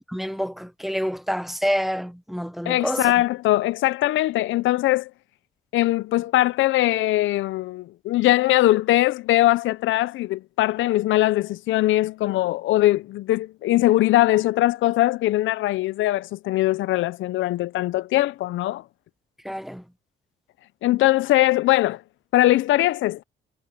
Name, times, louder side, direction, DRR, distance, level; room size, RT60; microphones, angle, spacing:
voice 1, 0.1-3.1 19.4-19.8, equal, ahead, 0.7 m, -27 dB
voice 2, 2.7-5.1 5.7-18.8 20.8-22.0 22.3-23.2, left 16 dB, 80° left, 0.5 m, -21 dB
cardioid pair, 90°, 20 cm